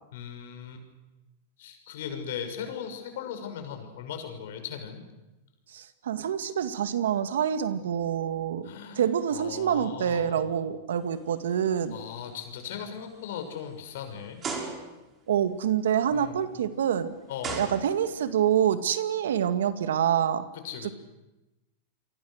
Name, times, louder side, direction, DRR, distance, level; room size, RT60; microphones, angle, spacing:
voice 1, 0.1-0.8 1.6-5.0 8.6-9.0 9.3-10.5 11.9-14.4 16.1-16.4 17.3-17.7 20.5-20.9, left 8 dB, 70° left, 6 dB, 6.2 m, -38 dB
voice 2, 5.7-8.7 9.0-12.0 15.3-17.1 17.6-20.5 20.8-20.9, right 9 dB, 80° right, 10 dB, 2.0 m, -26 dB
sound 1, 11.2-11.6 12.1-12.2 12.9-13.0 14.4-15.1 16.6-16.7 17.4-18.3, right 4 dB, 25° right, 6.1 m, -36 dB
29.0 x 24.0 x 6.6 m, 1.0 s
hypercardioid pair, 120°, 0 cm